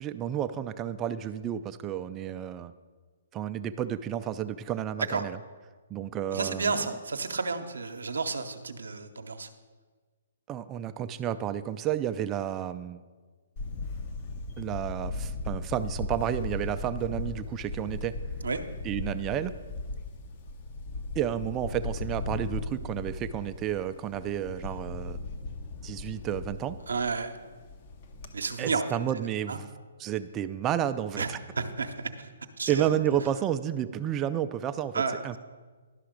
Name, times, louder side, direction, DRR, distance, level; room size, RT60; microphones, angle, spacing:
voice 1, 0.0-2.7 3.3-5.4 5.9-6.8 10.5-13.0 14.6-18.2 18.8-19.5 21.2-25.2 25.8-26.8 28.6-29.7 30.0-31.4 32.7-35.4, right 10 dB, 20° right, 12 dB, 0.3 m, -31 dB
voice 2, 6.3-9.5 18.4-18.6 26.9-27.3 28.3-28.8 29.5-29.6 31.2-31.3 31.6-32.3 32.6-33.0 34.9-35.4, right 4 dB, 80° right, 7 dB, 0.7 m, -31 dB
Camera, 13.6-28.3, left 2 dB, 40° left, 0.8 m, -37 dB
11.5 x 5.8 x 5.0 m, 1.4 s
hypercardioid pair, 140°, 0 cm